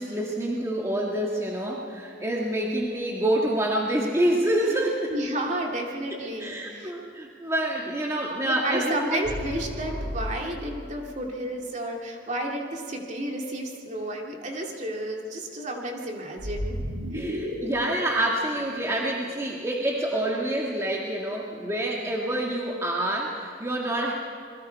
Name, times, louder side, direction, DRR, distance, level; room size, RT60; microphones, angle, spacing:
voice 1, 0.0-5.1 6.1-9.2 17.1-24.1, right 1 dB, 15° right, -2 dB, 1.8 m, -27 dB
voice 2, 5.1-6.9 8.4-16.8, right 1 dB, 40° right, 0 dB, 2.7 m, -32 dB
sound 1, 9.2-10.8 16.4-19.5, equal, 90° right, 6.1 m, -34 dB
28.0 x 21.5 x 4.7 m, 2.3 s
head